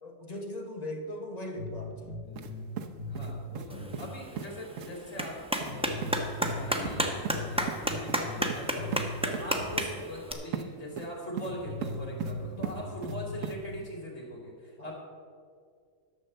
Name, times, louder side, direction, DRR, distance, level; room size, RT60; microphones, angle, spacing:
voice 1, 0.0-2.2 12.6-12.8 14.8-15.0, left 1 dB, 30° left, 2 dB, 1.2 m, -39 dB
sound 1, 1.6-4.2 4.4-4.5 5.1-5.2 5.7-9.9 10.2-10.3 10.9-11.0 11.5-13.5, left 2 dB, 85° left, 1.8 m, -39 dB
sound 2, 2.4-2.5 2.8-3.7 3.9-4.1 4.4-4.5 4.8-4.9 5.2-5.3 5.6-5.7 6.0-6.1 6.4-6.6 6.9-7.4 7.7-7.8 8.1-8.2 8.5-8.6 8.9-9.0 9.3-9.4 10.5-10.7 11.0-11.5 11.8-12.3 12.6-13.2 13.4-13.6, right 8 dB, 70° right, 1.1 m, -37 dB
voice 2, 3.0-6.1 6.4-15.0, equal, 65° left, -3 dB, 3.5 m, -41 dB
Clapping, 3.7-10.3, equal, 5° right, 0.9 m, -33 dB
12.5 x 6.4 x 7.8 m, 2.2 s
omnidirectional pair, 1.4 m